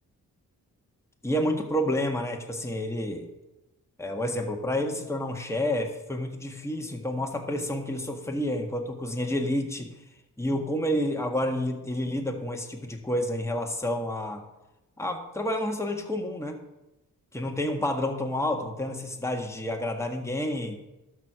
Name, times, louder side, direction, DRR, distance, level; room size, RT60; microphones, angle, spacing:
voice 1, 1.2-3.3 4.0-9.9 10.4-14.4 15.0-16.6 17.3-20.8, left 1 dB, 5° left, 2 dB, 1.6 m, -29 dB
12.5 x 4.7 x 6.2 m, 0.96 s
supercardioid pair, 45°, 37 cm